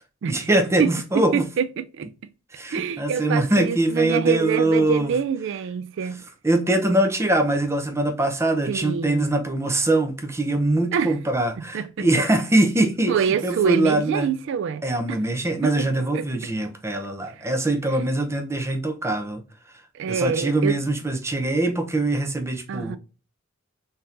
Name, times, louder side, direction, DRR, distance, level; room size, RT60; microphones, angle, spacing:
voice 1, 0.3-1.5 2.5-5.2 6.4-14.3 14.8-19.4 19.7-19.8 20.1-23.0, right 2 dB, 15° right, 0.5 m, -23 dB
voice 2, 1.3-2.1 2.7-6.2 8.7-9.3 10.9-11.1 11.6-12.1 13.1-14.8 15.1-15.2 15.6-15.9 16.1-16.2 19.9-20.8 22.7-23.0, right 7 dB, 60° right, 0.3 m, -25 dB
3.5 x 2.8 x 2.4 m
head